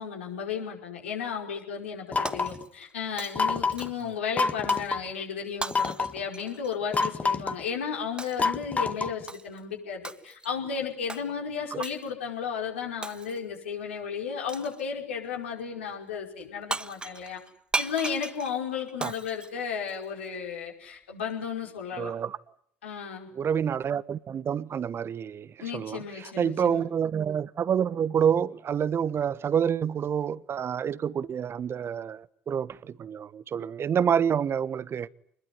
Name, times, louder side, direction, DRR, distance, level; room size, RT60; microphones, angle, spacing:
voice 1, 0.0-17.4 17.8-22.1 22.8-23.3 25.6-26.8, left 7 dB, 75° left, 5.3 m, -34 dB
sound 1, 2.1-2.6 3.4-3.9 4.4-5.0 5.7-6.2 6.9-7.6 8.4-9.2, left 4 dB, 20° left, 1.8 m, -27 dB
Shatter, 2.3-2.9 3.2-4.1 4.7-4.9 5.6-7.2 8.2-8.5 9.3-9.6 10.0-10.5 11.1-11.3 11.8-12.1 13.0-13.6 14.5-14.9 16.4-16.5 16.7-20.3, right 2 dB, 15° right, 1.3 m, -37 dB
voice 2, 22.0-22.4 23.4-26.0 26.4-35.1, right 8 dB, 40° right, 1.2 m, -28 dB
26.0 x 21.5 x 9.7 m
figure-of-eight pair, 55°, 6 cm